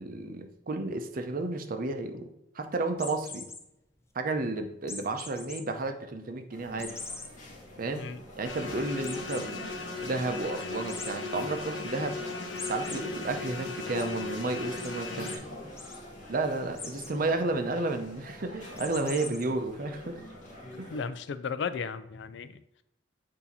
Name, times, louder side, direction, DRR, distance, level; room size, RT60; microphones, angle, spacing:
voice 1, 0.0-2.3 2.5-3.5 4.1-7.0 7.8-8.0 8.4-9.7 10.0-12.3 12.7-15.4 16.3-20.3 20.8-20.9, right 2 dB, 50° right, 6 dB, 0.6 m, -32 dB
sound 1, 2.9-3.6 4.9-5.6 6.0-6.1 6.8-7.3 7.8-7.9 8.2-8.3 9.0-9.5 10.9-11.1 12.6-13.0 13.4-14.0 14.8-14.9 15.2-15.4 15.7-16.0 16.7-17.1 18.8-19.4, left 3 dB, 15° left, 0.6 m, -41 dB
sound 2, 6.5-21.0, left 1 dB, 45° left, 1.5 m, -46 dB
sound 3, 8.4-15.4, left 3 dB, 85° left, 1.0 m, -37 dB
voice 2, 20.9-22.6, left 5 dB, 70° left, 13 dB, 0.4 m, -35 dB
8.2 x 2.8 x 4.1 m, 0.84 s
head